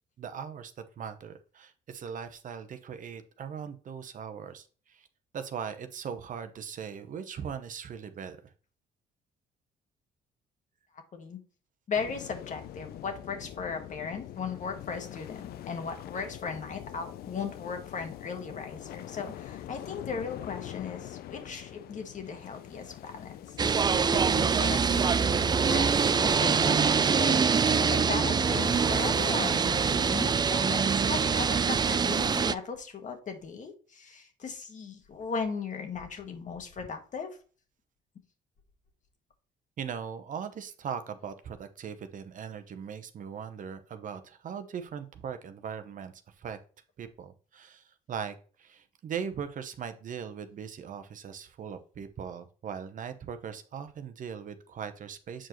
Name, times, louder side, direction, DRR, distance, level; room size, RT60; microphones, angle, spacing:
voice 1, 0.2-5.1 5.3-8.4 39.8-46.6 47.0-55.5, right 7 dB, 50° right, 10 dB, 0.8 m, -39 dB
sound 1, 11.9-30.3, left 12 dB, 70° left, 0.5 m, -44 dB
voice 2, 11.9-27.4 27.8-37.4, left 5 dB, 50° left, 5 dB, 1.6 m, -37 dB
sound 2, 23.6-32.5, right 6 dB, 25° right, 0.4 m, -24 dB
7.5 x 4.6 x 3.0 m, 0.38 s
supercardioid pair, 75°, 17 cm